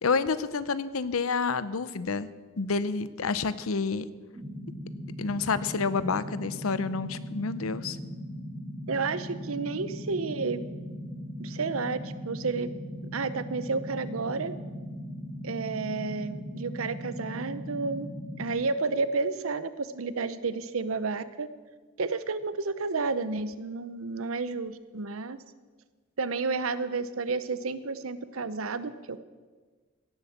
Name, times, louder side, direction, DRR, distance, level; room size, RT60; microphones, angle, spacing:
voice 1, 0.0-2.3 2.6-4.1 5.2-8.0, left 4 dB, 85° left, 15 dB, 0.7 m, -29 dB
sound 1, 4.3-18.5, equal, 10° right, 2.2 m, -39 dB
voice 2, 8.9-10.7 11.4-12.7 13.1-14.5 15.4-18.1 18.4-21.5 22.0-25.4 26.2-29.2, right 4 dB, 80° right, 14 dB, 0.8 m, -31 dB
17.0 x 8.0 x 7.3 m, 1.4 s
head